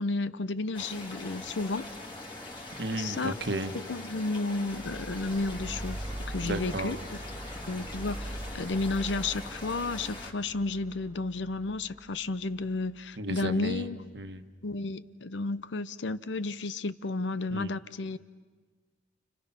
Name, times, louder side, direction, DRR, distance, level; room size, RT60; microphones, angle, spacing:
voice 1, 0.0-1.9 2.9-3.4 3.7-7.0 7.7-14.0 14.6-18.2, left 3 dB, 80° left, 0.7 m, -32 dB
sound 1, 0.7-10.3, left 2 dB, 25° left, 2.7 m, -43 dB
voice 2, 2.8-3.7 6.4-7.0 13.2-13.9 14.1-14.4 17.5-17.7, right 1 dB, 65° right, 1.3 m, -33 dB
sound 2, 4.7-13.0, right 1 dB, 20° right, 1.2 m, -42 dB
29.5 x 29.5 x 5.8 m
head